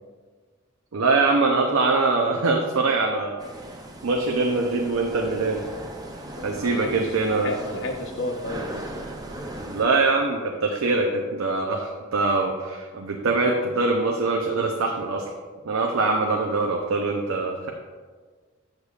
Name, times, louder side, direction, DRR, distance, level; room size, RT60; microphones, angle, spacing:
voice 1, 0.9-3.4 4.0-5.6 6.4-7.5 9.7-15.3 15.6-17.7, right 3 dB, 90° right, 1 dB, 0.6 m, -23 dB
sound 1, 3.4-9.8, right 1 dB, 20° right, 0.5 m, -38 dB
voice 2, 6.3-8.9, left 2 dB, 60° left, 4 dB, 0.8 m, -32 dB
8.0 x 6.7 x 2.4 m, 1.5 s
head